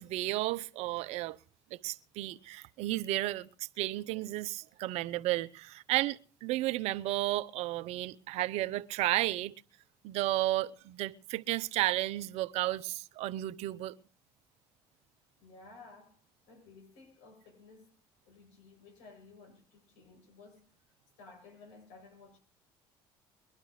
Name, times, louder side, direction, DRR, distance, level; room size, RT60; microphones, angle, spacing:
voice 1, 0.0-1.4 1.7-9.5 10.0-13.9, right 16 dB, 70° right, 0.7 m, -33 dB
voice 2, 15.4-18.0 18.2-20.7 21.2-22.4, left 3 dB, 80° left, 7.7 m, -55 dB
22.5 x 12.0 x 3.2 m
supercardioid pair, 80°, 11 cm